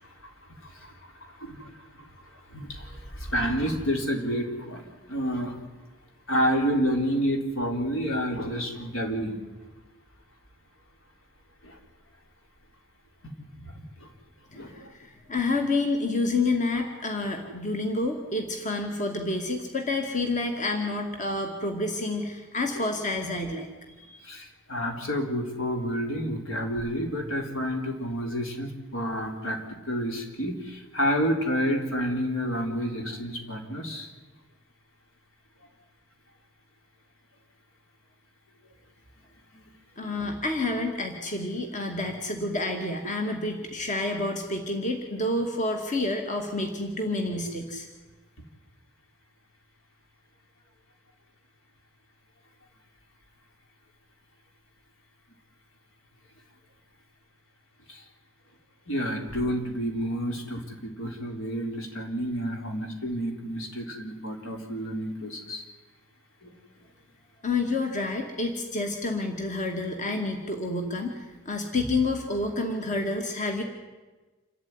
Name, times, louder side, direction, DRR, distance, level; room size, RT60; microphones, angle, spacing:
voice 1, 0.6-0.9 1.2-5.6 6.3-9.4 11.6-11.8 13.5-13.7 14.0-14.1 14.5-14.9 22.8-22.9 24.2-34.1 39.5-39.7 57.9-58.0 58.9-65.6 66.4-66.5, equal, 70° left, 3 dB, 3.9 m, -30 dB
voice 2, 14.5-23.7 24.0-24.2 40.0-47.9 67.4-73.6, left 2 dB, 35° left, 3 dB, 2.3 m, -29 dB
27.5 x 13.5 x 9.8 m, 1.3 s
head